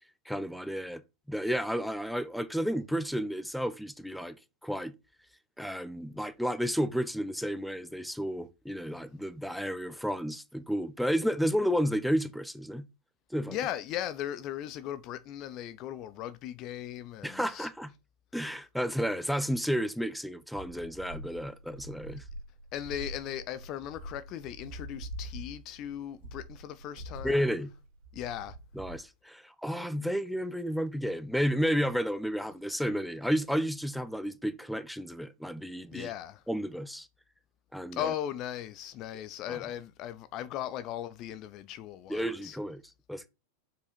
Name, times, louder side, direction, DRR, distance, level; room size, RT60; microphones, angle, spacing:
voice 1, 0.3-1.0 1.3-4.3 4.6-4.9 5.6-12.9 13.3-13.6 17.2-17.9 18.3-22.2 27.2-27.7 28.8-36.1 36.5-37.1 37.7-38.1 39.5-39.6 42.1-42.8 43.1-43.3, equal, ahead, 0.7 m, -32 dB
voice 2, 13.5-17.7 22.7-27.5 28.1-28.6 35.9-36.4 37.9-42.6, left 11 dB, 40° left, 0.5 m, -38 dB
sound 1, 20.5-28.9, right 1 dB, 60° right, 1.7 m, -44 dB
6.2 x 4.9 x 4.3 m
figure-of-eight pair, 90°, 0 cm